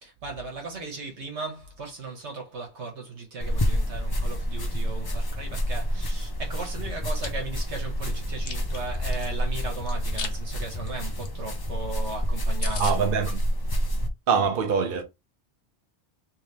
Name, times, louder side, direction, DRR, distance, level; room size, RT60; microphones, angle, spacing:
voice 1, 0.0-13.0, right 3 dB, 80° right, 1.5 m, -37 dB
sound 1, 3.4-14.1, equal, 35° left, 0.4 m, -28 dB
Chewing mastication, 6.9-7.3 7.8-9.3 9.9-10.4 10.7-10.9 11.2-11.3 11.6-11.7 12.0-12.1 12.3-12.4 12.6-13.0, left 6 dB, 60° left, 0.9 m, -36 dB
voice 2, 12.8-13.4 14.3-15.0, right 6 dB, 55° right, 0.8 m, -24 dB
3.2 x 3.0 x 3.3 m
omnidirectional pair, 1.2 m